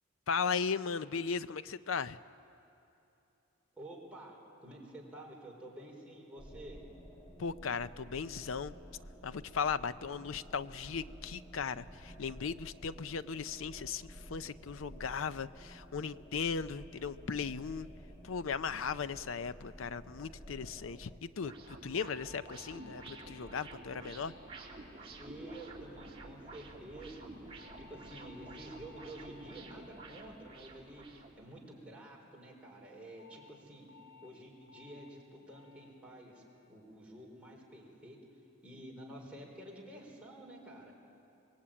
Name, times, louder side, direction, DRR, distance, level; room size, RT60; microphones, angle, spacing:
voice 1, 0.3-2.2 7.4-8.7 9.2-17.9 18.2-24.3, left 6 dB, 70° left, 14 dB, 0.6 m, -37 dB
voice 2, 3.8-6.8 23.9-24.3 25.2-33.9 34.2-38.2 38.6-40.9, right 1 dB, 5° right, -3 dB, 4.2 m, -50 dB
sound 1, 6.4-21.2, equal, 20° left, 1.6 m, -52 dB
sound 2, 21.4-31.5, right 2 dB, 25° right, 2.7 m, -50 dB
sound 3, 22.0-26.4 27.6-32.0 33.2-33.5 33.9-34.3 34.7-35.1 35.5-35.9 36.3-36.7 37.1-37.5, left 6 dB, 85° left, 3.4 m, -61 dB
24.5 x 20.5 x 8.8 m, 2.8 s
head